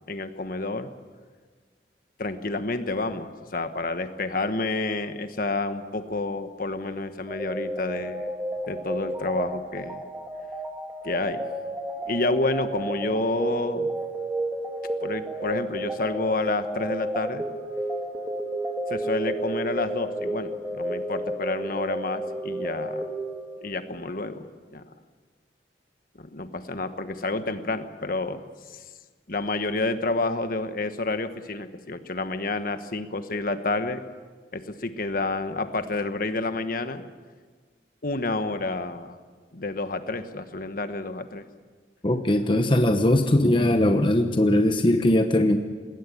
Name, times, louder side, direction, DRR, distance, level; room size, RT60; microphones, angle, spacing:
voice 1, 0.1-0.9 2.2-8.3 8.7-10.0 11.0-11.4 12.0-13.9 15.0-17.4 18.9-23.0 23.6-24.5 24.7-24.8 26.2-28.4 28.7-28.8 29.3-34.0 34.5-37.0 38.0-39.2 39.5-41.4, left 2 dB, 50° left, 9 dB, 1.3 m, -29 dB
sound 1, 7.3-23.9, right 1 dB, 10° right, 2.3 m, -32 dB
voice 2, 42.0-45.6, left 1 dB, 30° left, 6 dB, 1.0 m, -20 dB
20.5 x 17.5 x 9.8 m, 1.5 s
head